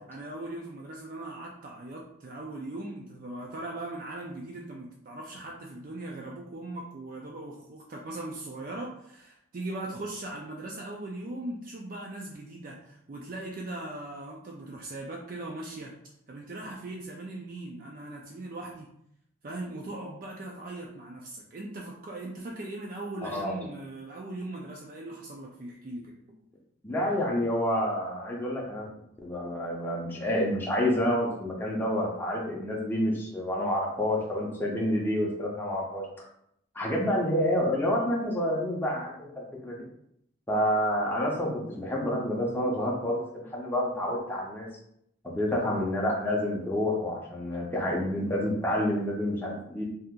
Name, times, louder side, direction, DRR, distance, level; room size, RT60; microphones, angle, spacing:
voice 1, 0.1-15.9 16.3-18.9 19.4-26.4, right 2 dB, 45° right, -1 dB, 0.4 m, -39 dB
voice 2, 23.2-23.5 26.8-28.9 29.2-36.0 36.7-39.9 40.5-44.7 45.4-49.8, left 1 dB, 10° left, -3 dB, 0.6 m, -28 dB
2.8 x 2.4 x 3.6 m, 0.73 s
head